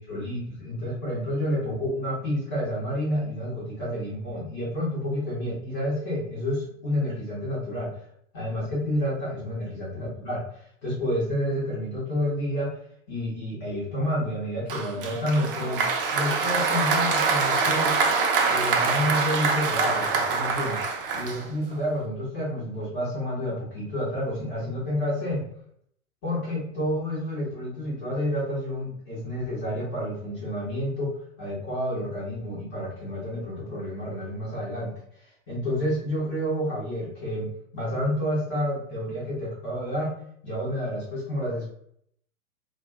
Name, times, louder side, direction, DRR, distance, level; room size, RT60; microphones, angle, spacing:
voice 1, 0.0-7.9 8.3-12.7 13.1-15.8 16.1-18.0 18.5-20.8 21.1-25.5 26.2-34.9 35.5-37.5 37.7-40.1 40.4-41.7, equal, 10° left, -7 dB, 0.3 m, -29 dB
Applause, 14.7-21.8, right 4 dB, 45° right, 0.5 m, -25 dB
2.3 x 2.2 x 3.4 m, 0.68 s
figure-of-eight pair, 105°, 41 cm